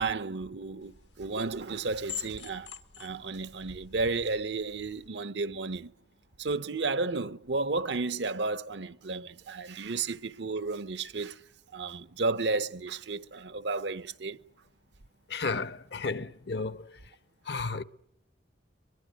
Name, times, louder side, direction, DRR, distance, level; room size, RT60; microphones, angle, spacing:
voice 1, 0.0-2.7 3.0-5.9 6.4-11.4 11.7-14.4, right 3 dB, 75° right, 0.9 m, -32 dB
sound 1, 0.8-5.1, left 8 dB, 85° left, 1.4 m, -46 dB
voice 2, 15.3-16.9 17.5-17.8, left 4 dB, 65° left, 1.0 m, -33 dB
23.0 x 22.5 x 9.1 m
head